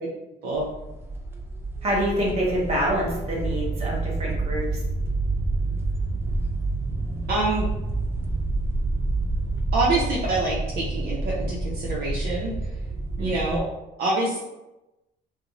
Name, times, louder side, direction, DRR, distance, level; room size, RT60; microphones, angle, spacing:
sound 1, 0.5-13.6, right 2 dB, 15° right, 0.4 m, -28 dB
voice 1, 1.8-4.8 13.2-13.6, equal, 40° right, -3 dB, 1.0 m, -26 dB
voice 2, 7.3-7.7 9.7-12.5 13.2-13.7 14.0-14.4, right 2 dB, 65° right, -5 dB, 0.5 m, -26 dB
2.5 x 2.0 x 2.9 m, 0.99 s
cardioid pair, 110°, 17 cm